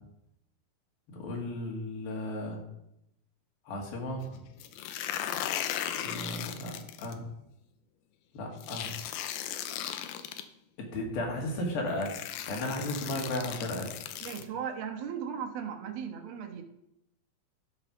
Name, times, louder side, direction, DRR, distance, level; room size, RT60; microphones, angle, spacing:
voice 1, 1.1-2.6 3.7-4.4 6.0-6.7 7.0-7.2 8.3-8.9 10.9-13.9, left 1 dB, 75° left, 0 dB, 3.9 m, -35 dB
sound 1, 4.6-7.2 8.6-10.4 11.4-11.5 12.0-14.4, left 10 dB, 90° left, 2.6 m, -36 dB
voice 2, 14.2-16.6, right 8 dB, 75° right, 4 dB, 3.0 m, -37 dB
13.0 x 5.5 x 6.0 m, 0.81 s
omnidirectional pair, 4.3 m